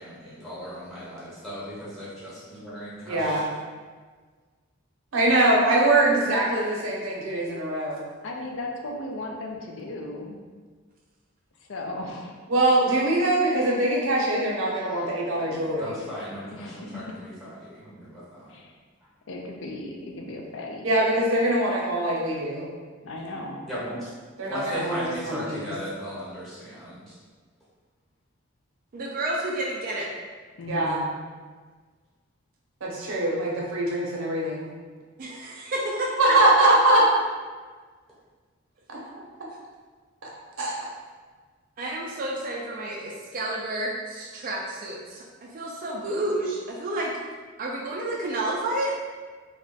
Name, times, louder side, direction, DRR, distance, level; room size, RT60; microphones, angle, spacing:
voice 1, 0.0-3.4 15.8-18.6 19.0-19.1 23.7-24.1 24.5-27.1, equal, ahead, -10 dB, 1.0 m, -37 dB
voice 2, 3.1-3.5 5.1-8.0 12.5-16.0 20.8-22.7 24.4-25.7 30.7-31.0 32.8-34.7 36.2-37.0 38.9-39.0 40.2-40.3 40.6-40.7, right 1 dB, 85° right, -3 dB, 0.7 m, -23 dB
voice 3, 8.2-10.4 11.6-12.4 14.6-17.1 18.5-18.7 19.3-20.9 23.0-23.7 30.6-31.0, left 2 dB, 70° left, 1 dB, 0.4 m, -37 dB
voice 4, 28.9-30.1 35.2-36.4 41.8-47.1 47.6-49.0, right 1 dB, 45° right, -2 dB, 0.3 m, -30 dB
2.4 x 2.1 x 3.8 m, 1.5 s
head